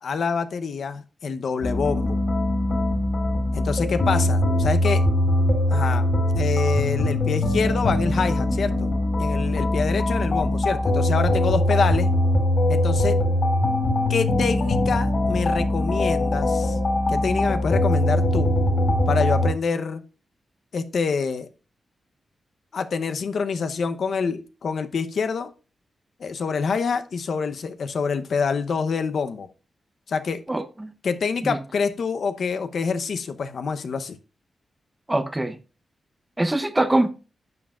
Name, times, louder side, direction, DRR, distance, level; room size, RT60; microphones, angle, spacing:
voice 1, 0.0-2.2 3.5-5.0 5.7-6.0 6.4-8.9 9.2-12.1 12.7-13.2 14.1-16.8 17.1-18.5 19.1-20.0 20.7-21.5 22.7-25.5 26.2-29.5 30.1-30.4 31.0-34.2, left 5 dB, 60° left, 0.8 m, -26 dB
sound 1, 1.6-19.5, left 1 dB, 45° left, 4.0 m, -22 dB
voice 2, 30.5-30.9 31.4-31.6 35.1-35.6 36.4-37.1, right 1 dB, 10° right, 0.7 m, -23 dB
11.0 x 7.4 x 2.4 m
wide cardioid pair, 165°, 0 cm